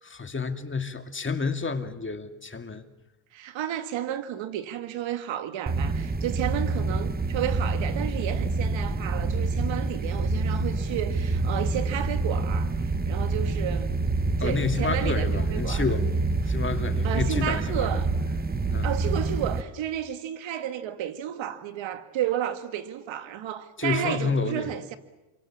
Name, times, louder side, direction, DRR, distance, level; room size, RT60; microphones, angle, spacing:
voice 1, 0.0-2.8 14.4-16.2 16.5-18.0 18.7-18.9 23.8-24.7, left 4 dB, 25° left, 2.2 m, -29 dB
voice 2, 3.3-13.9 14.4-15.8 17.0-18.1 18.8-25.0, right 11 dB, 65° right, 2.1 m, -32 dB
sound 1, 5.7-19.6, right 3 dB, 20° right, 1.5 m, -27 dB
sound 2, 8.5-16.8, left 9 dB, 75° left, 3.9 m, -47 dB
28.0 x 23.5 x 7.3 m
supercardioid pair, 85°, 48 cm